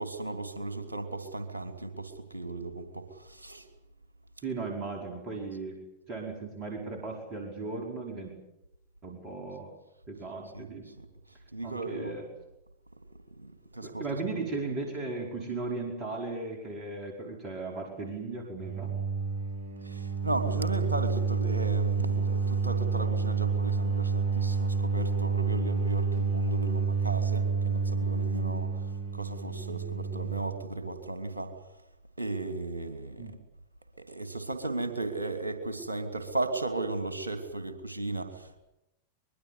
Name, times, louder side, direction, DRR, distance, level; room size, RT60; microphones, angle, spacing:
voice 1, 0.0-3.7 10.5-10.6 11.0-11.1 11.5-12.2 13.4-14.0 19.8-31.5 32.2-33.3 34.0-38.6, right 2 dB, 80° right, 8 dB, 3.1 m, -35 dB
voice 2, 4.4-5.8 6.1-8.3 9.0-9.7 10.1-10.8 11.6-12.2 13.8-18.9 33.2-33.4, right 3 dB, 30° right, 1 dB, 5.1 m, -36 dB
sound 1, 18.6-30.4, right 5 dB, 50° right, 3.8 m, -29 dB
24.5 x 22.0 x 8.3 m, 0.90 s
figure-of-eight pair, 90°, 0 cm